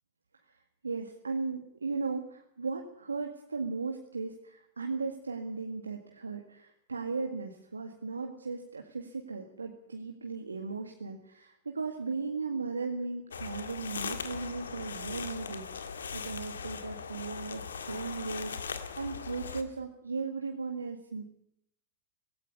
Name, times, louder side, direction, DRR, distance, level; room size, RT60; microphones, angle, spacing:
voice 1, 0.8-21.2, right 4 dB, 80° right, 3 dB, 1.9 m, -37 dB
sound 1, 13.3-19.6, left 6 dB, 75° left, 1.8 m, -39 dB
17.0 x 17.0 x 9.7 m, 0.74 s
figure-of-eight pair, 95°, 0 cm